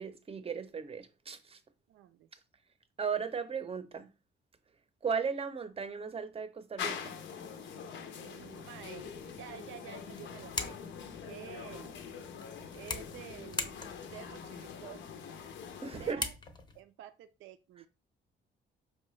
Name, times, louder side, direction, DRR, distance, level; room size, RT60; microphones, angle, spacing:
voice 1, 0.0-1.6 3.0-4.1 5.0-7.2 15.8-16.3, right 6 dB, 30° right, 0.6 m, -36 dB
voice 2, 1.9-2.3 8.2-10.8 11.2-11.9 12.8-15.0 15.8-16.3 16.7-17.9, right 11 dB, 80° right, 0.4 m, -50 dB
sound 1, 6.8-16.1, left 7 dB, 70° left, 0.6 m, -44 dB
sound 2, 8.4-16.8, left 3 dB, 20° left, 0.6 m, -44 dB
4.7 x 2.2 x 3.1 m
cardioid pair, 90°, 20 cm